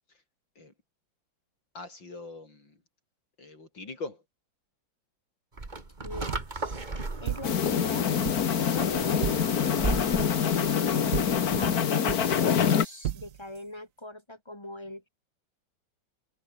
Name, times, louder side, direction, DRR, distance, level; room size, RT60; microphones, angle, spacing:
voice 1, 1.7-2.8 3.4-4.2, left 3 dB, 70° left, 6.2 m, -42 dB
sound 1, 5.6-11.9, right 3 dB, 25° right, 2.2 m, -36 dB
voice 2, 6.0-6.4 6.9-8.2 8.7-9.3 10.4-15.1, left 1 dB, 15° left, 3.8 m, -42 dB
sound 2, 6.3-13.6, right 11 dB, 60° right, 0.9 m, -37 dB
sound 3, 7.4-12.9, left 8 dB, 50° left, 1.7 m, -25 dB
omnidirectional pair, 2.1 m